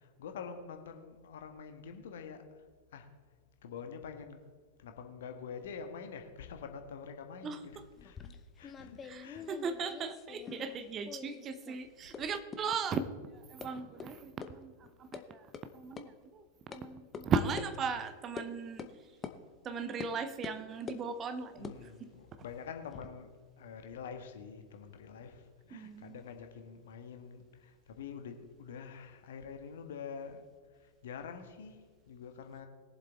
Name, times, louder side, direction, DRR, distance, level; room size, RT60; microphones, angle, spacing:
voice 1, 0.0-2.4 2.9-3.1 3.6-4.5 4.8-8.3 8.6-9.5 10.6-10.7 12.0-12.3 12.7-12.8 21.6-23.3 23.6-30.4 30.8-32.7, left 6 dB, 60° left, 1.4 m, -46 dB
sound 1, 8.0-10.8 11.0-11.8 12.1-12.2 12.5-12.6 12.9-13.0 13.6-13.7 14.0-14.1 14.4-14.5 14.8-15.2 15.5-15.6 16.0-16.1 16.7-16.8 17.1-17.2 17.6-17.7 18.4-18.5 18.8-18.9 19.2-19.4 20.0-20.1 20.4-21.0 21.5-23.1, left 7 dB, 25° left, 0.8 m, -45 dB
voice 2, 9.0-13.1 13.3-14.7 15.0-15.4 15.7-16.4 16.7-18.9 19.6-21.7 25.7-26.2, right 5 dB, 25° right, 0.8 m, -37 dB
21.0 x 7.6 x 3.5 m
figure-of-eight pair, 90°, 0 cm